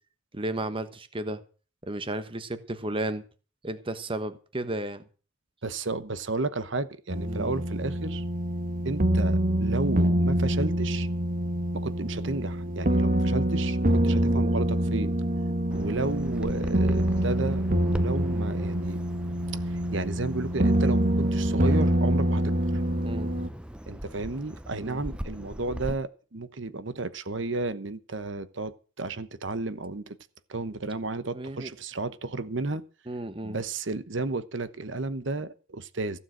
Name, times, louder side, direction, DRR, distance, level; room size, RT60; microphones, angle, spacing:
voice 1, 0.3-1.4 1.9-3.2 3.6-5.0 7.2-7.5 15.7-15.9 23.0-23.3 24.8-25.0 31.3-31.7 33.1-33.6, right 1 dB, 25° right, 1.2 m, -33 dB
voice 2, 5.6-8.2 8.8-11.1 11.7-15.1 15.7-19.0 19.6-22.6 23.9-30.2 30.5-32.8 33.4-36.2, right 3 dB, 65° right, 1.1 m, -32 dB
sound 1, 7.1-23.5, right 1 dB, 45° right, 1.2 m, -25 dB
Bird vocalization bird call bird song, 15.7-25.9, equal, 5° right, 0.7 m, -41 dB
15.0 x 7.1 x 7.9 m
head